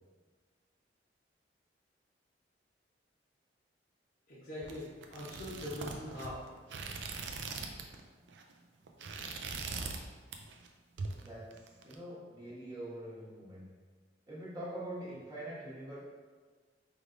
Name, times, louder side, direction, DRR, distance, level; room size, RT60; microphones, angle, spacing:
voice 1, 4.3-6.4, left 1 dB, 55° left, -9 dB, 0.9 m, -42 dB
sound 1, 4.6-8.0 8.3-8.5 8.9-10.0 10.3-10.7 11.0-11.9, right 4 dB, 90° right, 0.4 m, -41 dB
voice 2, 9.6-9.9 11.1-11.5 11.8-13.6 14.3-16.0, right 1 dB, 20° right, -8 dB, 1.1 m, -44 dB
4.9 x 3.3 x 2.6 m, 1.5 s
head